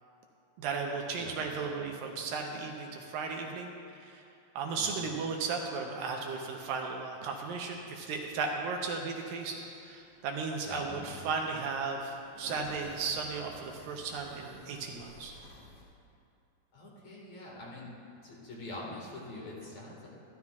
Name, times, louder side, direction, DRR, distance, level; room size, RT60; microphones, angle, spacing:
voice 1, 0.6-3.7 4.0-4.2 4.6-15.3, right 4 dB, 80° right, 1 dB, 2.4 m, -35 dB
sound 1, 7.5-15.8, equal, 35° left, 1.4 m, -53 dB
voice 2, 16.7-17.9 18.2-20.1, left 2 dB, 55° left, -5 dB, 2.8 m, -44 dB
14.0 x 13.5 x 2.4 m, 2.6 s
omnidirectional pair, 4.3 m